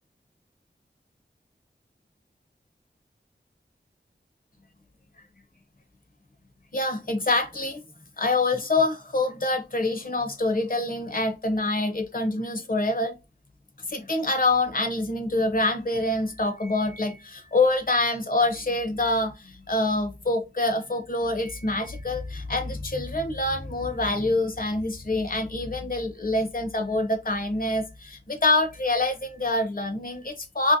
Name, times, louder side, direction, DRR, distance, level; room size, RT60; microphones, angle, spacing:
voice 1, 6.7-7.8 8.2-13.1 13.9-30.8, left 2 dB, 50° left, 0.6 m, -26 dB
2.9 x 2.6 x 2.5 m
wide cardioid pair, 65°, 19 cm